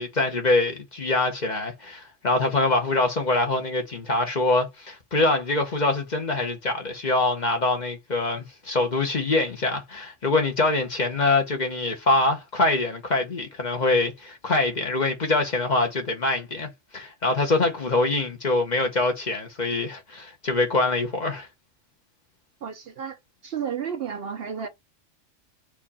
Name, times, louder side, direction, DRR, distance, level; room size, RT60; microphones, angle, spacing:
voice 1, 0.0-21.5, left 2 dB, 40° left, 1.0 m, -24 dB
voice 2, 22.6-24.7, right 7 dB, 60° right, 0.8 m, -32 dB
4.6 x 2.5 x 4.1 m
omnidirectional pair, 1.3 m